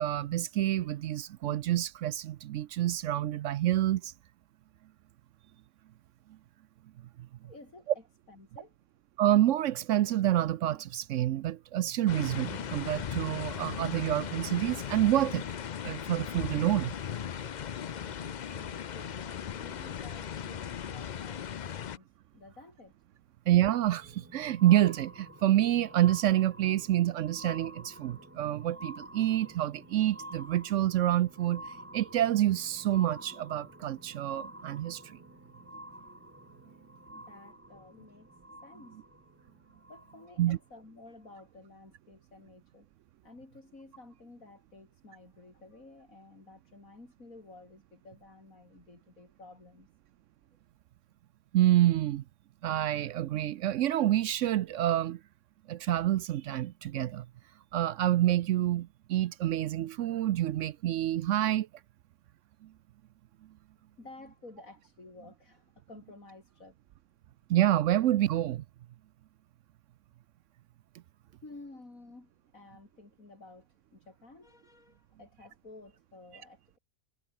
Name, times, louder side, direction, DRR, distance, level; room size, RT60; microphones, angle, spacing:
voice 1, 0.0-4.1 9.2-15.5 15.8-16.9 23.5-31.6 31.9-35.2 40.4-40.6 51.5-52.2 52.6-55.2 55.7-57.3 57.7-61.7 67.5-68.6, right 13 dB, 70° right, 0.8 m, -27 dB
voice 2, 7.4-8.8 18.5-22.1 22.3-23.0 37.1-38.3 38.6-39.0 39.9-42.9 43.2-49.9 64.0-66.8 71.4-76.8, left 2 dB, 75° left, 5.2 m, -52 dB
sound 1, 12.1-22.0, left 8 dB, 55° left, 0.5 m, -38 dB
sound 2, 23.7-40.6 41.3-41.4, right 1 dB, 10° right, 3.1 m, -50 dB
omnidirectional pair, 1.5 m